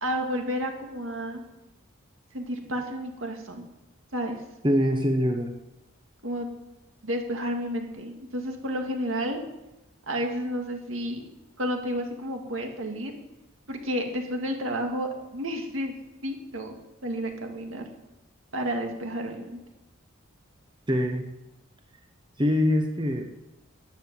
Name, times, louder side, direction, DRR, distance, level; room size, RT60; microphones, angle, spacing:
voice 1, 0.0-1.4 2.3-3.6 4.1-4.4 6.2-6.5 7.0-9.4 10.1-11.2 11.6-13.2 13.7-15.9 16.2-16.8 17.0-17.9 18.5-19.6, equal, 70° right, 3 dB, 2.1 m, -31 dB
voice 2, 4.6-5.5 20.9-21.2 22.4-23.3, equal, 20° right, 4 dB, 0.9 m, -23 dB
13.0 x 9.6 x 7.7 m, 0.95 s
head